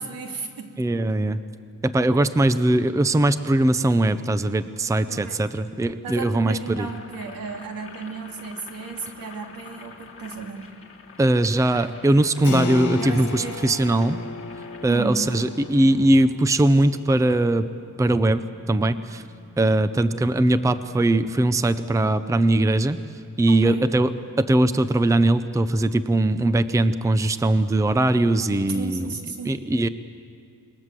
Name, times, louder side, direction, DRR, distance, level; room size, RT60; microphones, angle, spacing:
voice 1, 0.0-0.8 5.1-5.6 6.0-10.7 13.0-13.6 14.9-15.4 19.7-19.9 23.5-23.9 28.7-29.6, right 4 dB, 80° right, 3 dB, 2.6 m, -34 dB
voice 2, 0.8-1.4 1.8-6.9 11.2-14.2 14.8-17.7 18.0-18.4 18.7-19.2 19.6-23.0 23.4-24.1 24.4-29.1 29.5-29.9, right 1 dB, 10° right, 12 dB, 0.6 m, -20 dB
Boiling, 6.6-16.1, left 5 dB, 40° left, 2.4 m, -47 dB
Keyboard (musical), 12.4-22.8, left 4 dB, 60° left, 1.9 m, -37 dB
27.5 x 21.5 x 7.6 m, 2.4 s
wide cardioid pair, 145°, 34 cm